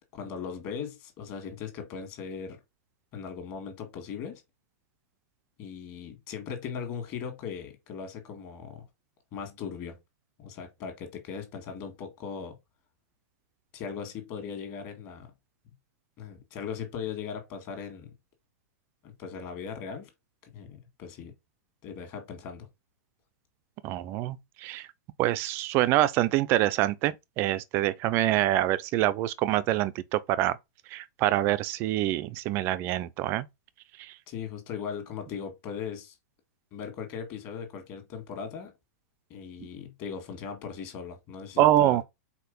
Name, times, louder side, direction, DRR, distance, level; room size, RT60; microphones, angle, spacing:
voice 1, 0.1-2.6 3.1-4.4 5.6-8.8 9.3-10.0 10.4-12.5 13.7-15.3 16.2-18.1 19.0-20.1 20.5-21.3 21.8-22.7 34.3-36.1 36.7-38.7 39.3-42.0, left 6 dB, 30° left, 1.6 m, -38 dB
voice 2, 23.8-24.9 25.2-30.6 30.9-33.5 34.0-34.1 41.6-42.0, right 14 dB, 25° right, 0.4 m, -25 dB
4.7 x 4.2 x 5.2 m
supercardioid pair, 170°, 10 cm